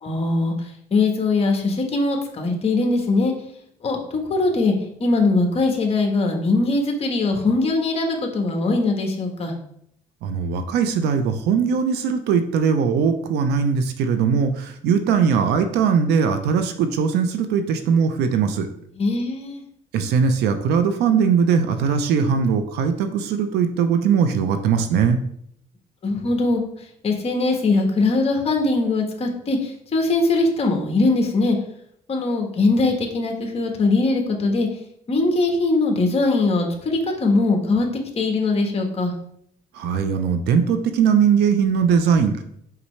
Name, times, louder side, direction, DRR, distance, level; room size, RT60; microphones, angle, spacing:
voice 1, 0.0-0.5 0.9-3.3 3.8-4.0 4.3-4.7 5.0-9.5 19.0-19.6 26.0-26.6 27.0-31.6 32.1-34.7 35.1-37.9 38.2-39.1, left 3 dB, 35° left, 3 dB, 1.4 m, -21 dB
voice 2, 10.2-18.7 19.9-25.2 39.7-42.4, right 6 dB, 80° right, 8 dB, 0.7 m, -20 dB
5.7 x 5.3 x 3.3 m, 0.70 s
cardioid pair, 110°, 17 cm